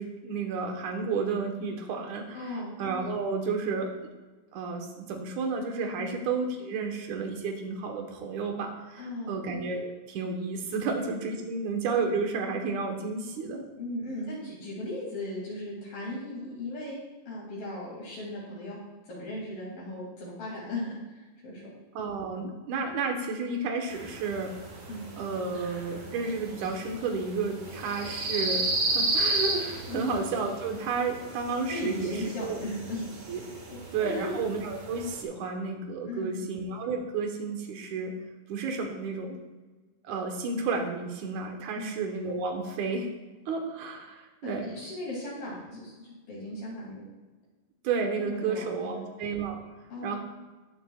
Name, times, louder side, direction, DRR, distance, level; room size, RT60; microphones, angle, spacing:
voice 1, 0.0-3.9 4.5-13.7 21.9-24.9 25.2-28.6 28.9-32.6 33.3-33.4 33.9-38.1 38.5-39.4 40.0-43.1 43.5-44.7 47.8-49.6 50.0-50.2, right 4 dB, 60° right, 2 dB, 2.5 m, -32 dB
voice 2, 2.3-2.7 6.0-6.1 9.0-9.4 10.8-10.9 13.8-17.0 17.3-18.8 19.1-21.0 21.4-21.7 24.9-25.0 29.9-30.1 31.6-33.1 33.7-34.3 36.1-36.5 41.7-42.0 44.4-47.0 48.2-49.0 49.9-50.2, left 1 dB, 70° left, -7 dB, 4.6 m, -37 dB
sound 1, 23.9-35.2, right 2 dB, 40° right, 2.0 m, -34 dB
21.0 x 7.2 x 2.5 m, 1.2 s
omnidirectional pair, 4.3 m